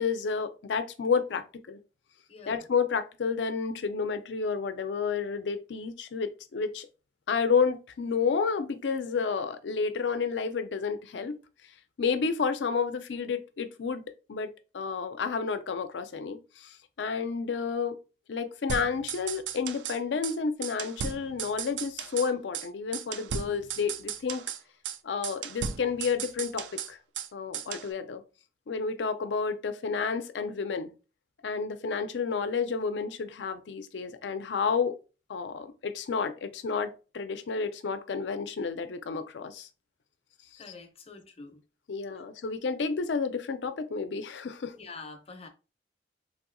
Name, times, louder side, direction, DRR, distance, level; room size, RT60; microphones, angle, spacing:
voice 1, 0.0-1.8 2.5-6.9 7.3-11.4 12.0-14.0 14.3-18.0 18.3-24.4 25.0-27.0 27.3-28.2 28.7-30.9 31.4-34.9 35.3-39.7 40.5-40.6 41.9-44.7, left 5 dB, 80° left, 0.4 m, -30 dB
voice 2, 2.3-2.6 40.6-41.6 42.2-42.3 44.7-45.5, left 4 dB, 35° left, 0.6 m, -46 dB
sound 1, 18.7-20.0 20.2-20.4 20.6-22.3 22.5-22.7 22.9-24.6 24.8-25.0 25.2-27.3 27.5-27.9, right 7 dB, 85° right, 0.4 m, -36 dB
3.5 x 2.7 x 2.5 m
head